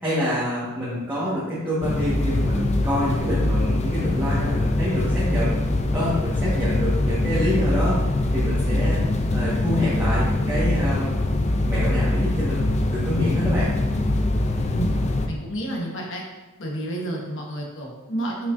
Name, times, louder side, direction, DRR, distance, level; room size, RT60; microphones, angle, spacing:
voice 1, 0.0-5.5 5.9-8.0 8.3-9.0 9.3-11.1 11.6-13.7, equal, 10° right, -10 dB, 1.5 m, -26 dB
sound 1, 1.8-15.3, left 1 dB, 35° left, 0.5 m, -23 dB
voice 2, 15.3-16.2 16.6-18.5, right 1 dB, 65° left, -1 dB, 1.3 m, -30 dB
6.8 x 5.7 x 2.7 m, 1.1 s
head